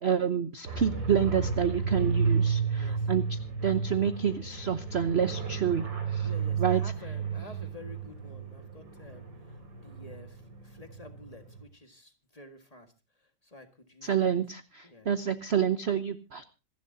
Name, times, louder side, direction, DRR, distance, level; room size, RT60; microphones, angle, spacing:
voice 1, 0.0-5.9 6.1-6.3 6.6-6.8 14.0-16.5, right 8 dB, 45° right, 10 dB, 0.9 m, -28 dB
sound 1, 0.7-11.6, right 5 dB, 80° right, 4.2 m, -32 dB
voice 2, 2.7-3.1 6.2-12.9 13.4-14.3 14.8-15.1, left 2 dB, 20° left, 5 dB, 1.8 m, -50 dB
26.5 x 11.5 x 2.7 m, 0.32 s
omnidirectional pair, 2.0 m